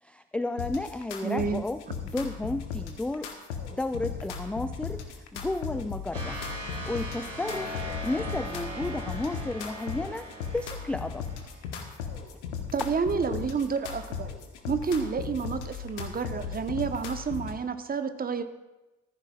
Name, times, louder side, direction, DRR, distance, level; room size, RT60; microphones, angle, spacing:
voice 1, 0.0-3.3 3.7-6.4 6.9-11.3 12.2-12.3, left 2 dB, 5° left, 10 dB, 0.4 m, -33 dB
sound 1, 0.6-17.6, left 6 dB, 70° left, 1.4 m, -37 dB
voice 2, 1.2-1.6 12.7-14.3 14.7-18.4, right 5 dB, 25° right, 10 dB, 1.0 m, -30 dB
sound 2, 6.1-11.7, equal, 80° right, 3.3 m, -39 dB
19.5 x 14.0 x 2.4 m, 1.0 s
figure-of-eight pair, 55°, 37 cm